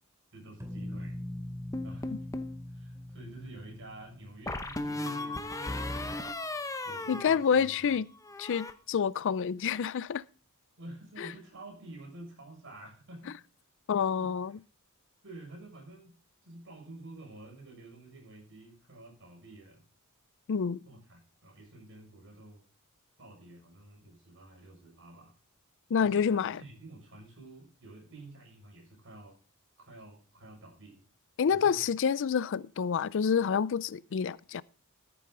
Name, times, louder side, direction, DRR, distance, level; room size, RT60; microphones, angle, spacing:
voice 1, 0.3-1.2 1.8-2.1 2.7-6.0 6.8-8.0 10.8-13.3 14.2-14.3 15.2-16.1 16.4-19.8 20.8-22.6 23.2-25.3 26.0-29.4 29.8-31.0 31.5-31.8, right 2 dB, 60° right, 6.2 m, -49 dB
sound 1, 0.6-5.5, left 1 dB, 10° right, 2.6 m, -43 dB
sound 2, 1.7-2.6 4.5-8.0 8.2-8.7, left 2 dB, 15° left, 0.8 m, -36 dB
voice 2, 7.1-8.0 8.4-10.2 11.2-11.3 13.9-14.5 20.5-20.8 25.9-26.6 31.4-34.6, left 6 dB, 55° left, 0.4 m, -28 dB
14.0 x 8.6 x 3.8 m
head